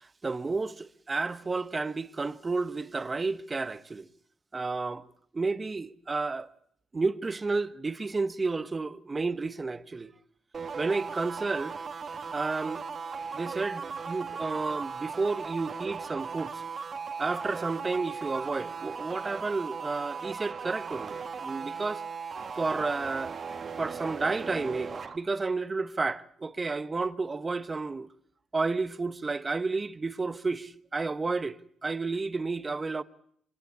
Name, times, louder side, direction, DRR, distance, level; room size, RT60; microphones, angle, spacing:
voice 1, 0.0-4.1 4.5-5.1 5.3-6.5 6.9-10.1 10.7-11.8 12.3-12.8 13.3-16.6 17.2-22.0 22.6-23.3 23.8-28.1 28.5-33.0, right 3 dB, 25° right, 1.1 m, -31 dB
sound 1, 10.5-25.2, right 5 dB, 40° right, 1.7 m, -38 dB
24.0 x 18.5 x 8.3 m
cardioid pair, 90°, 0 cm